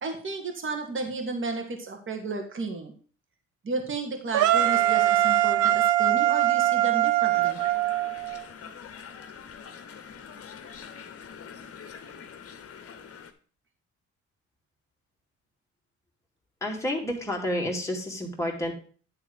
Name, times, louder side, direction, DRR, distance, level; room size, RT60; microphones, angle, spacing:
voice 1, 0.0-2.9 3.6-7.6, right 3 dB, 40° right, 3 dB, 2.0 m, -33 dB
sound 1, 4.3-8.4, right 13 dB, 75° right, 0.6 m, -22 dB
sound 2, 7.3-13.3, left 7 dB, 50° left, 1.1 m, -44 dB
voice 2, 16.6-18.7, left 1 dB, 10° left, -1 dB, 2.7 m, -30 dB
9.8 x 3.7 x 6.3 m, 0.41 s
cardioid pair, 90°, 30 cm